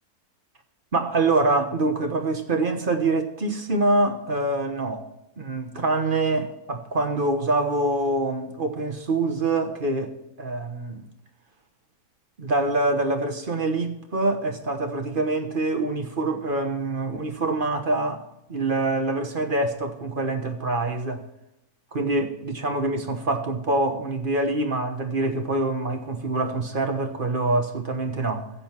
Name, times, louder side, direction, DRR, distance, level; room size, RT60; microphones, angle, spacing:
voice 1, 0.9-5.0 5.4-11.0 12.4-18.2 18.5-21.3 21.9-28.5, right 2 dB, 40° right, 1.2 m, -25 dB
15.5 x 7.8 x 4.5 m
omnidirectional pair, 1.6 m